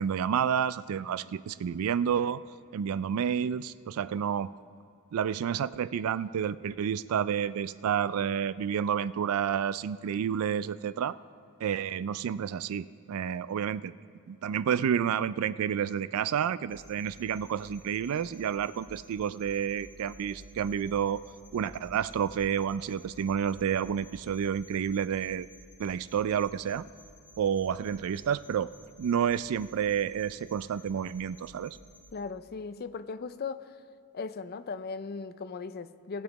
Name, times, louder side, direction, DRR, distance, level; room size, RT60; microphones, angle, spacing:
voice 1, 0.0-2.4 2.7-4.5 5.1-11.2 11.6-13.9 14.3-21.2 21.5-25.5 25.8-26.8 27.4-28.7 29.0-31.8, right 8 dB, 70° right, 17 dB, 0.3 m, -30 dB
sound 1, 16.7-32.1, equal, 10° right, 1.6 m, -54 dB
voice 2, 32.1-33.7 34.1-36.2, left 4 dB, 45° left, 12 dB, 0.4 m, -38 dB
19.0 x 7.1 x 4.0 m, 2.6 s
head